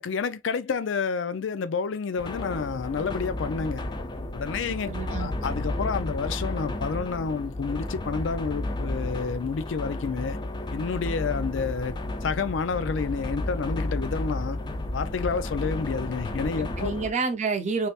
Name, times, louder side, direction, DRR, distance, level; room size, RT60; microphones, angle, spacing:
voice 1, 0.0-3.8 4.3-10.4 10.7-11.9 12.2-14.6 14.9-16.9, left 5 dB, 90° left, 0.4 m, -29 dB
sound 1, 2.2-17.1, left 1 dB, 25° left, 0.4 m, -32 dB
voice 2, 4.7-5.3 16.6-17.9, right 4 dB, 40° right, 0.7 m, -29 dB
3.2 x 2.9 x 2.4 m
head